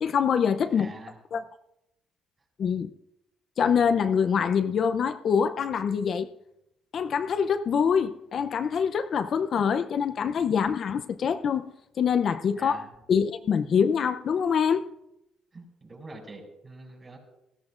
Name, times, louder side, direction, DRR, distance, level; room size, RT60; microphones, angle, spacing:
voice 1, 0.0-0.9 1.3-1.4 2.6-2.9 3.6-6.3 6.9-11.7 12.0-12.8 13.1-14.9, left 7 dB, 50° left, 0.5 m, -25 dB
voice 2, 0.7-1.2 12.5-12.9 15.5-17.2, right 2 dB, 30° right, 5.3 m, -44 dB
19.5 x 14.0 x 2.5 m
cardioid pair, 105°, 0 cm